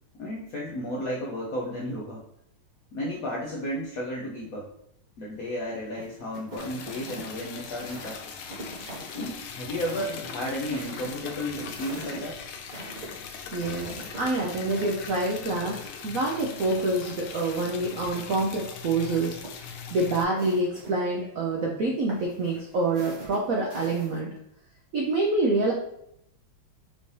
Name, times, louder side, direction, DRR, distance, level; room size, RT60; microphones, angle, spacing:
voice 1, 0.2-2.2 2.9-4.7 5.2-8.4 9.1-12.4, equal, 70° left, -3 dB, 0.8 m, -33 dB
sound 1, 5.9-15.1 16.4-18.2 18.5-18.6 19.3-20.9 22.1-24.2, right 2 dB, 45° right, 1.6 m, -44 dB
Liquid, 6.6-20.2, left 6 dB, 85° left, 1.4 m, -40 dB
voice 2, 13.5-19.4 19.9-24.3 24.9-25.7, right 2 dB, 75° right, -2 dB, 0.7 m, -27 dB
5.4 x 2.6 x 3.1 m, 0.76 s
omnidirectional pair, 2.3 m